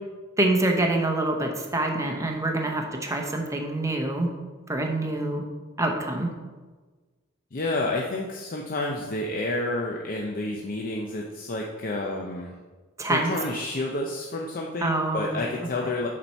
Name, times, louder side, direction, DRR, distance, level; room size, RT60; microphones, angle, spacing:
voice 1, 0.4-4.3 4.7-5.4 5.8-6.3 13.0-13.3 14.8-15.4, right 2 dB, 15° right, 2 dB, 0.8 m, -26 dB
voice 2, 7.5-12.5 13.1-16.1, left 2 dB, 45° left, 0 dB, 0.6 m, -29 dB
7.4 x 4.3 x 5.5 m, 1.3 s
head